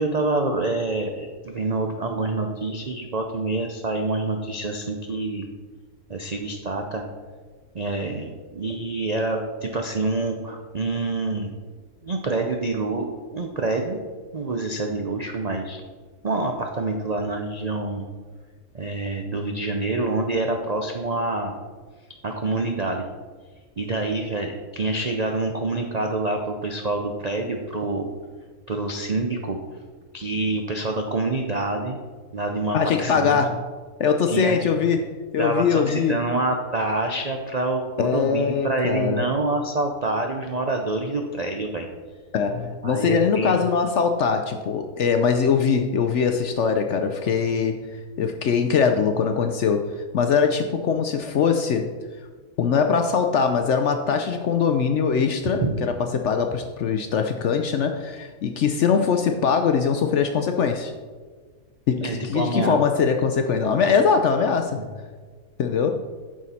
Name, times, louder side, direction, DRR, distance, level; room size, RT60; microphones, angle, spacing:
voice 1, 0.0-5.5 6.1-7.1 7.7-11.5 12.0-14.0 14.3-15.8 16.2-18.0 18.7-21.6 22.2-23.1 23.8-28.1 28.7-29.6 30.1-32.0 32.3-33.4 34.3-34.6 35.4-41.9 42.8-43.7 55.6-55.7 62.0-62.8 64.8-64.9, right 2 dB, 55° right, 3 dB, 0.4 m, -26 dB
voice 2, 32.7-33.7 34.0-36.2 38.0-39.2 42.3-47.8 48.2-49.9 50.1-51.9 52.6-60.9 61.9-64.8 65.6-66.0, left 6 dB, 65° left, 6 dB, 0.7 m, -22 dB
9.1 x 6.3 x 4.2 m, 1.5 s
omnidirectional pair, 1.6 m